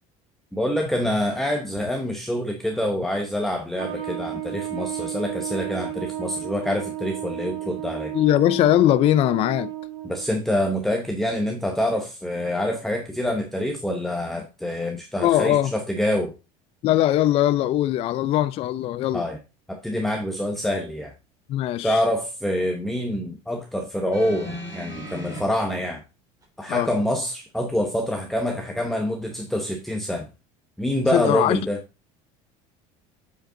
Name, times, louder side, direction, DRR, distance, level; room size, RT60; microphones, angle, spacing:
voice 1, 0.5-8.1 10.0-16.3 19.1-19.4 19.7-21.1 21.8-26.0 26.6-30.3 30.8-31.8, left 1 dB, ahead, 0.8 m, -26 dB
Trumpet, 3.7-10.3, right 13 dB, 55° right, 2.7 m, -33 dB
voice 2, 8.1-9.7 15.2-15.7 16.8-19.2 21.5-22.0 26.7-26.9 31.1-31.6, left 13 dB, 40° left, 0.4 m, -20 dB
sound 1, 24.1-25.4 26.4-26.5, equal, 20° right, 3.3 m, -36 dB
7.7 x 5.1 x 3.7 m
cardioid pair, 150°, 15 cm